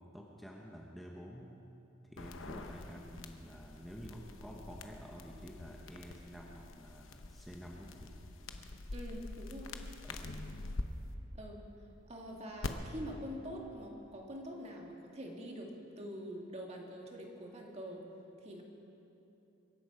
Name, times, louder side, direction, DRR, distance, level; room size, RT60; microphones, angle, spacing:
voice 1, 0.0-1.5 2.1-8.1 10.0-10.4, equal, ahead, -2 dB, 1.1 m, -50 dB
sound 1, 2.2-10.8 12.6-12.7, left 2 dB, 80° left, 0.9 m, -45 dB
voice 2, 8.9-9.7 11.3-11.6 12.1-15.7 16.0-18.0 18.4-18.6, equal, 35° right, 0 dB, 2.0 m, -45 dB
23.5 x 11.0 x 4.9 m, 2.9 s
head